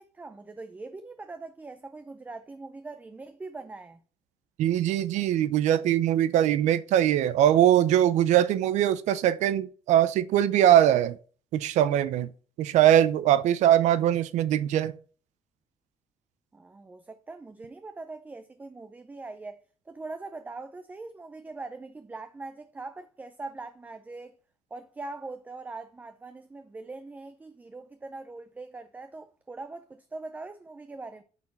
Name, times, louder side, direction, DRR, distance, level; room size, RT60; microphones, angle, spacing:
voice 1, 0.0-4.0 16.5-24.4 24.7-31.2, right 3 dB, 15° right, 0.5 m, -42 dB
voice 2, 4.6-11.1 11.5-12.3 12.6-14.9, right 11 dB, 85° right, 0.6 m, -22 dB
8.7 x 4.3 x 5.7 m
cardioid pair, 155°, 12 cm